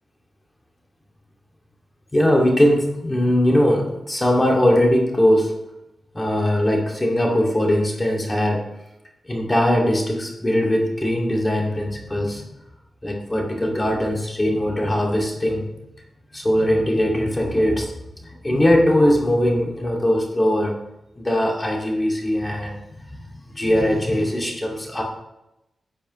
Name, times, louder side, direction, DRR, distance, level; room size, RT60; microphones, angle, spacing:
voice 1, 2.1-5.5 6.1-8.7 9.3-12.5 13.0-15.7 16.3-17.9 18.2-20.8 21.2-25.0, left 1 dB, 20° left, -1 dB, 2.4 m, -20 dB
13.0 x 8.6 x 3.2 m, 0.89 s
cardioid pair, 65°, 0 cm